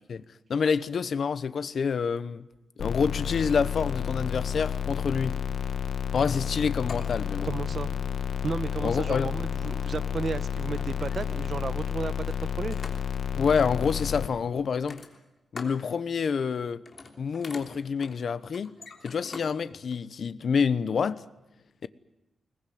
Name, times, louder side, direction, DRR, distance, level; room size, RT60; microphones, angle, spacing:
voice 1, 0.5-2.5 2.8-5.4 6.1-7.5 8.8-9.3 13.3-15.0 15.5-16.8 17.2-18.7 19.0-21.2, left 6 dB, 60° left, 1.0 m, -27 dB
sound 1, 2.8-14.3, left 8 dB, 75° left, 1.8 m, -31 dB
Growling, 6.3-11.5, right 1 dB, 15° right, 7.5 m, -56 dB
sound 2, 6.9-7.7 8.8-9.0 10.2-10.3 10.7-11.6 12.3-13.3 14.7-15.8 16.2-16.5 16.8-19.5 19.9-20.0, left 4 dB, 40° left, 3.2 m, -45 dB
voice 2, 7.4-7.9 8.4-12.8, right 5 dB, 45° right, 1.0 m, -33 dB
22.0 x 20.0 x 9.4 m
wide cardioid pair, 135°, 0 cm